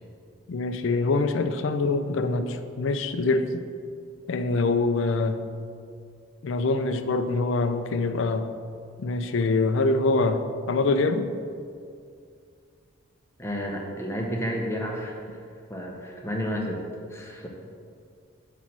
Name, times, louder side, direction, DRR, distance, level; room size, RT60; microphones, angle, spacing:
voice 1, 0.5-3.5 4.3-5.4 6.4-8.5 9.0-11.3, left 3 dB, 65° left, 9 dB, 0.4 m, -24 dB
voice 2, 13.4-15.2 15.7-16.8 17.1-17.5, equal, 10° left, -1 dB, 0.8 m, -31 dB
8.1 x 3.1 x 5.9 m, 2.3 s
head